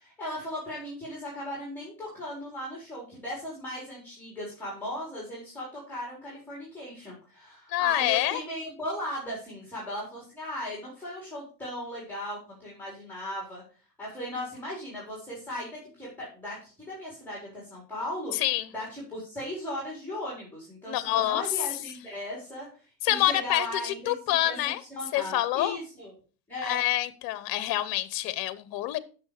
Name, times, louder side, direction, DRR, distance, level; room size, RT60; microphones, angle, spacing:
voice 1, 0.0-13.6 14.0-18.3 18.7-22.7 23.1-24.6 24.9-26.1 26.5-26.8, left 1 dB, 5° left, -3 dB, 4.5 m, -37 dB
voice 2, 7.7-8.4 18.3-18.7 20.9-21.5 23.0-24.8 25.1-25.8 26.6-29.0, left 15 dB, 45° left, 16 dB, 1.0 m, -27 dB
9.4 x 6.7 x 5.0 m, 0.38 s
supercardioid pair, 125°, 48 cm